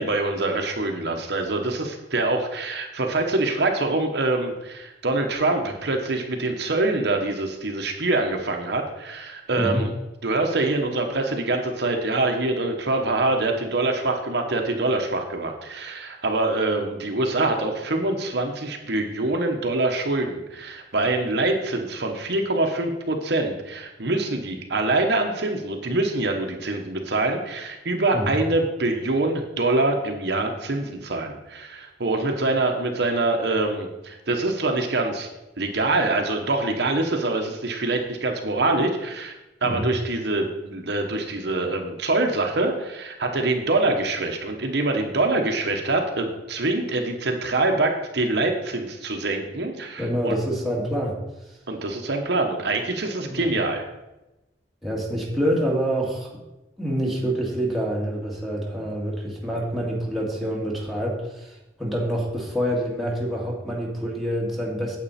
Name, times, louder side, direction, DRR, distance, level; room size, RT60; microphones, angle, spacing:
voice 1, 0.0-9.9 10.2-35.3 35.6-39.3 39.6-50.4 51.7-53.8, right 2 dB, 65° right, 3 dB, 1.1 m, -25 dB
voice 2, 50.0-51.2 53.3-53.5 54.8-56.3 56.8-65.0, equal, ahead, -4 dB, 1.9 m, -26 dB
9.0 x 7.9 x 4.3 m, 0.97 s
head